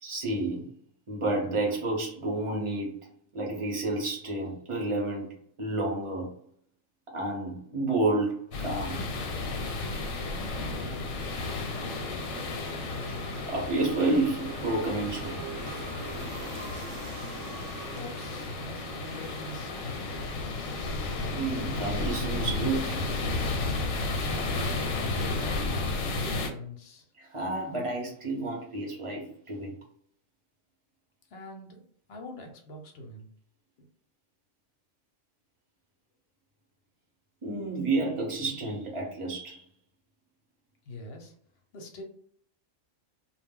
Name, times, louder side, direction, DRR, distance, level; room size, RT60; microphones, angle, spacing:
voice 1, 0.0-0.7 1.1-2.9 3.3-5.3 5.6-6.3 7.1-9.0 13.1-13.2 13.5-15.4 21.2-23.0 27.2-29.7 37.4-39.6, right 2 dB, 30° right, -2 dB, 0.6 m, -30 dB
sound 1, 8.5-26.5, left 3 dB, 85° left, 1.0 m, -33 dB
sound 2, 9.2-23.1, right 3 dB, 70° right, 0.9 m, -45 dB
voice 2, 10.7-12.3 17.3-20.3 25.2-27.1 31.3-31.8 32.1-33.3 40.8-41.3 41.7-42.0, left 1 dB, 60° left, 2 dB, 0.8 m, -44 dB
2.2 x 2.0 x 3.5 m, 0.62 s
omnidirectional pair, 1.4 m